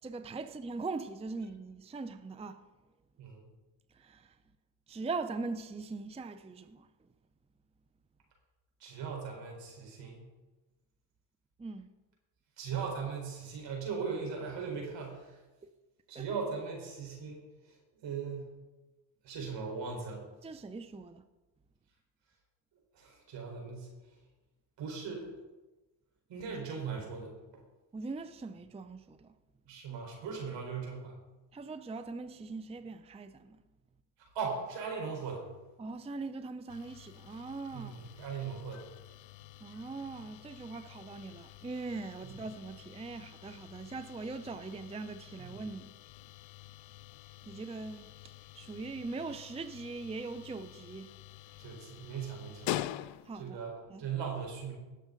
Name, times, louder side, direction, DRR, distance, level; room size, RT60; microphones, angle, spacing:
voice 1, 0.0-2.6 3.9-4.3 4.9-6.9 11.6-11.9 16.1-16.2 20.4-21.2 27.9-29.4 31.5-33.6 35.8-38.1 39.6-45.9 47.5-48.1 48.5-51.1 53.2-53.6 53.9-54.0, right 3 dB, 15° right, 0.6 m, -41 dB
voice 2, 8.8-10.3 12.6-15.4 16.1-17.8 18.0-18.5 19.2-20.3 22.9-23.9 24.8-25.3 26.3-27.6 29.7-31.2 34.3-35.5 37.7-38.9 45.4-45.5 51.6-52.7 53.3-54.7, right 5 dB, 70° right, 4.4 m, -39 dB
sound 1, 36.7-53.5, left 14 dB, 80° left, 0.6 m, -46 dB
19.5 x 6.6 x 3.9 m
supercardioid pair, 80°, 45 cm